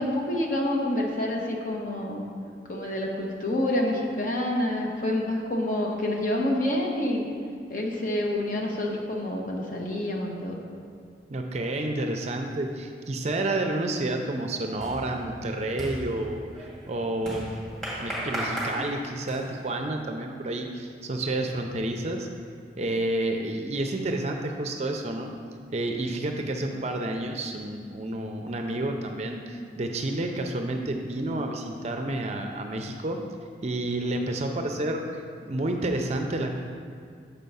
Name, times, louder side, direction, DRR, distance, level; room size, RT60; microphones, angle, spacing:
voice 1, 0.0-2.2 2.7-7.3 7.7-10.6 26.7-26.8, left 1 dB, 45° left, -1 dB, 1.0 m, -28 dB
voice 2, 11.3-16.4 16.9-17.5 18.0-22.3 22.8-25.3 25.7-33.2 33.6-36.6, right 1 dB, 35° right, 4 dB, 0.5 m, -30 dB
sound 1, 13.2-13.5 13.9-19.7, equal, 5° left, 1.8 m, -36 dB
7.1 x 4.5 x 5.4 m, 2.2 s
head